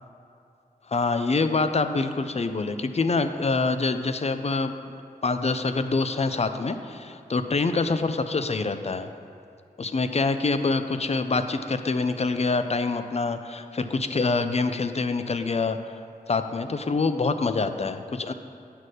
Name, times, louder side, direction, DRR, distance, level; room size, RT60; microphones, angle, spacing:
voice 1, 0.9-4.7 5.2-9.1 9.8-15.9 16.3-18.3, left 3 dB, 45° left, 9 dB, 0.5 m, -25 dB
9.1 x 4.2 x 6.5 m, 2.5 s
cardioid pair, 50°, 16 cm